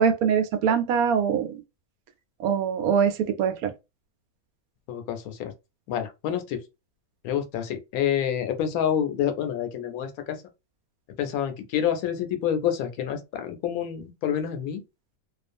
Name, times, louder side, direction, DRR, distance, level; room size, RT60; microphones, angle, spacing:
voice 1, 0.0-1.5 2.4-3.7, right 7 dB, 80° right, 1.0 m, -23 dB
voice 2, 4.9-5.5 5.9-6.6 7.2-10.4 11.2-14.8, left 9 dB, 80° left, 1.0 m, -28 dB
2.4 x 2.3 x 2.5 m
omnidirectional pair, 1.5 m